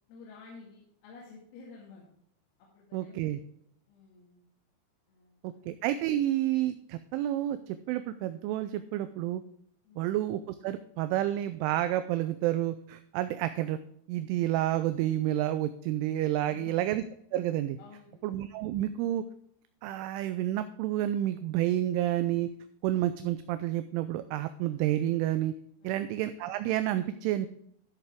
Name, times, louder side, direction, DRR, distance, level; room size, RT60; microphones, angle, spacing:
voice 1, 0.1-2.1 2.6-3.4 3.9-4.4 5.1-5.7 9.8-10.1 16.4-16.8 17.8-18.2 25.8-26.1, left 4 dB, 80° left, -4 dB, 4.6 m, -52 dB
voice 2, 2.9-3.4 5.4-9.4 10.0-13.8 14.1-17.0 17.3-17.8 18.2-19.2 19.8-22.5 22.8-25.5 25.8-27.5, right 13 dB, 85° right, 11 dB, 2.7 m, -30 dB
13.5 x 6.8 x 3.5 m, 0.71 s
omnidirectional pair, 6.0 m